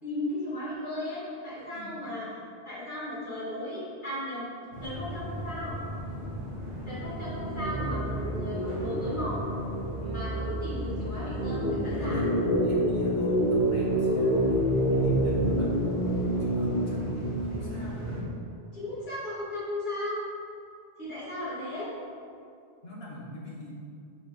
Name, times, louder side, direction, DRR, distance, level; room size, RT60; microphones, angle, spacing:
voice 1, 0.0-2.3 2.7-4.5 4.8-5.8 6.9-9.4 10.0-12.2 18.7-20.2 21.0-21.9, left 1 dB, 45° left, -9 dB, 2.1 m, -36 dB
voice 2, 1.7-2.1 6.8-7.0 11.8-15.9 16.4-18.1 22.8-23.8, equal, 65° left, -5 dB, 1.7 m, -43 dB
sound 1, 4.7-18.2, right 1 dB, 60° right, 2.0 m, -28 dB
6.0 x 5.0 x 4.8 m, 2.5 s
omnidirectional pair, 1.1 m